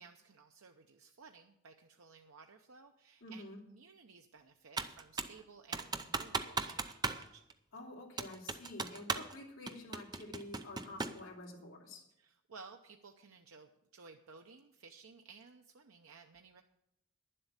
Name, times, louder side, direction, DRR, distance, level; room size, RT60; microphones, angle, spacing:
voice 1, 0.0-7.4 12.2-16.6, right 5 dB, 80° right, 4 dB, 0.7 m, -57 dB
voice 2, 3.2-3.6 7.7-12.0, left 1 dB, 70° left, -3 dB, 2.9 m, -49 dB
Computer keyboard, 4.8-5.4 5.7-7.2 7.5-7.6 8.2-9.4 9.7-11.2, right 4 dB, 20° right, 0.5 m, -37 dB
10.5 x 7.7 x 8.1 m, 0.82 s
head